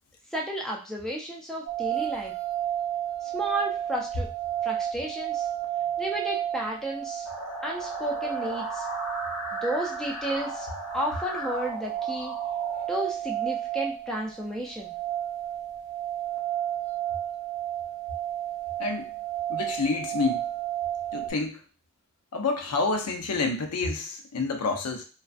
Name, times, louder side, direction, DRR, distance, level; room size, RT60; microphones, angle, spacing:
voice 1, 0.3-2.3 3.3-4.3 4.6-5.5 6.0-7.3 7.6-8.9 9.5-10.7 10.9-12.3 12.9-14.9, right 1 dB, ahead, -2 dB, 0.3 m, -32 dB
sound 1, 1.7-21.3, right 11 dB, 65° right, 0.4 m, -32 dB
sound 2, 7.2-12.8, left 1 dB, 70° left, 0.9 m, -37 dB
voice 2, 19.5-20.5 21.1-21.6 22.3-25.0, left 3 dB, 90° left, 4 dB, 0.5 m, -28 dB
2.3 x 2.3 x 2.5 m, 0.35 s
head